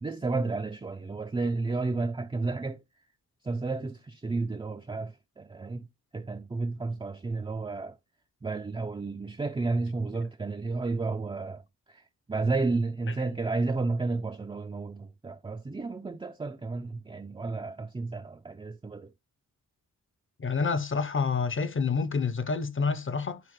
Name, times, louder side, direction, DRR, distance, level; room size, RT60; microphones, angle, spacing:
voice 1, 0.0-2.8 3.4-5.9 6.1-8.0 8.4-19.1, right 3 dB, 15° right, 0.5 m, -32 dB
voice 2, 20.4-23.4, left 5 dB, 35° left, 0.8 m, -28 dB
11.0 x 4.5 x 3.1 m
wide cardioid pair, 110°, 36 cm